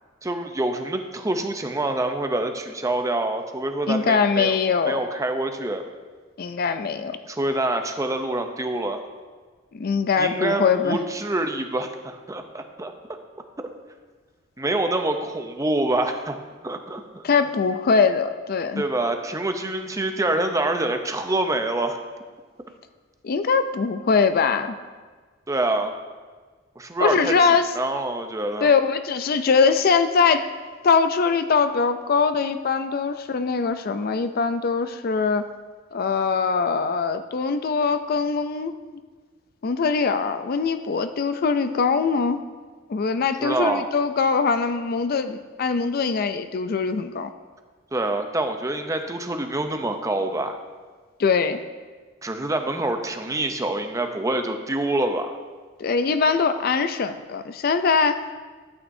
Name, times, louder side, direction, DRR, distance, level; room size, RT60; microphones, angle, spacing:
voice 1, 0.2-4.6 4.9-5.8 7.3-9.0 10.2-12.9 14.6-16.4 16.6-17.3 18.8-22.0 25.5-25.9 26.8-28.7 43.4-43.9 47.9-50.6 52.2-55.4, right 2 dB, 15° right, 6 dB, 0.6 m, -26 dB
voice 2, 3.9-5.0 6.4-7.2 9.7-11.0 17.2-18.8 23.2-24.7 27.0-27.7 28.6-30.5 30.8-35.5 35.9-38.8 39.6-42.4 42.9-47.3 51.2-51.6 55.8-58.2, left 5 dB, 50° left, 10 dB, 0.4 m, -22 dB
12.0 x 8.7 x 2.7 m, 1.4 s
head